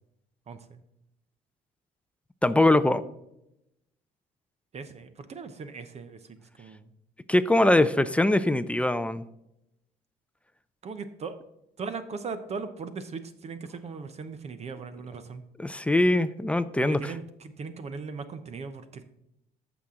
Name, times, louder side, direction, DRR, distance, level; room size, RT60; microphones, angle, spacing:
voice 1, 0.5-0.8 4.7-6.2 6.6-6.9 10.8-11.3 11.8-15.4 16.8-19.0, right 4 dB, 40° right, 11 dB, 0.9 m, -38 dB
voice 2, 2.4-3.0 7.3-9.2 15.6-17.1, left 1 dB, 5° left, 13 dB, 0.4 m, -22 dB
14.0 x 6.0 x 3.8 m, 0.82 s
cardioid pair, 110°, 17 cm